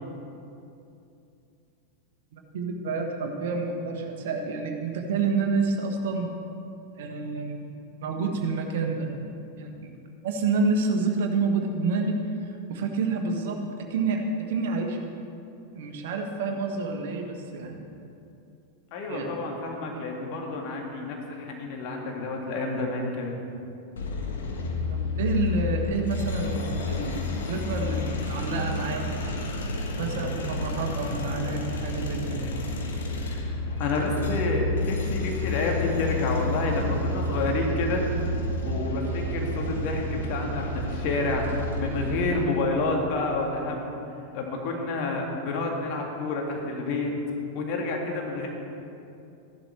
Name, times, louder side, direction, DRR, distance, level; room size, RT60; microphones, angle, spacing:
voice 1, 2.3-6.3 7.0-7.6 8.0-9.9 10.2-15.1 15.7-17.9 19.1-19.3 24.9-29.1 30.0-32.5, right 4 dB, 55° right, 3 dB, 1.5 m, -29 dB
voice 2, 18.9-23.3 33.3-33.4 33.8-38.0 38.6-44.0 44.3-47.1 47.5-48.5, left 3 dB, 45° left, 1 dB, 1.9 m, -29 dB
sound 1, 24.0-42.5, left 2 dB, 65° left, 1.5 m, -30 dB
14.0 x 11.5 x 4.6 m, 2.7 s
figure-of-eight pair, 90°, 0 cm